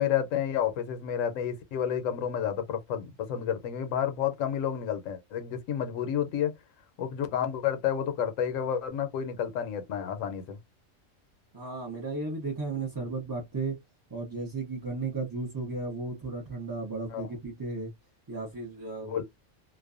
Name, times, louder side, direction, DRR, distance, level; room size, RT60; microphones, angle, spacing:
voice 1, 0.0-6.5 7.0-10.6 17.1-17.3 19.0-19.2, left 9 dB, 75° left, 1.0 m, -30 dB
voice 2, 11.5-13.8 14.1-17.9 18.3-19.2, right 3 dB, 30° right, 0.4 m, -34 dB
2.5 x 2.1 x 2.4 m
omnidirectional pair, 1.4 m